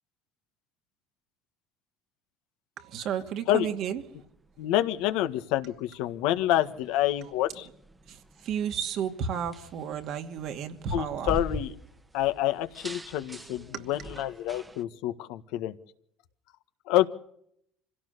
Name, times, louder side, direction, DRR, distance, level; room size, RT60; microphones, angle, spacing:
voice 1, 2.8-4.0 8.1-11.3 13.5-13.9, right 8 dB, 55° right, 2.5 m, -33 dB
sound 1, 3.7-14.8, right 1 dB, 10° right, 1.4 m, -44 dB
voice 2, 4.6-7.7 10.9-11.7 12.1-15.7 16.9-17.1, left 13 dB, 75° left, 1.7 m, -27 dB
25.5 x 16.5 x 6.8 m
supercardioid pair, 100°, 0 cm